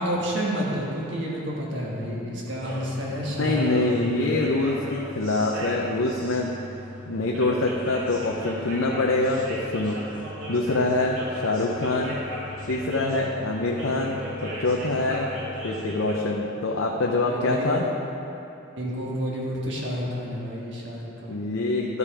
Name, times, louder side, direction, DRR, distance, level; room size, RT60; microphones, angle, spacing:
voice 1, 0.0-4.1 17.3-17.8 18.7-21.5, equal, 60° right, -4 dB, 1.6 m, -30 dB
sound 1, 2.5-16.2, equal, 85° right, 2.2 m, -37 dB
voice 2, 3.4-6.5 7.1-10.0 10.5-12.1 12.7-15.3 15.6-17.8 21.3-22.0, left 2 dB, 75° left, -1 dB, 0.7 m, -25 dB
12.0 x 5.6 x 4.9 m, 2.9 s
head